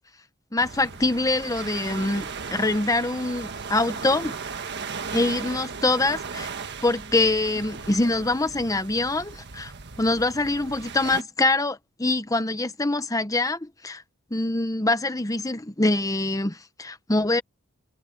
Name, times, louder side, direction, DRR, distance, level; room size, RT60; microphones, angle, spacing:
voice 1, 0.5-4.3 5.1-6.5 6.8-14.0 14.3-17.4, left 2 dB, 15° left, 0.9 m, -24 dB
sound 1, 0.6-11.2, right 5 dB, 50° right, 1.5 m, -37 dB
head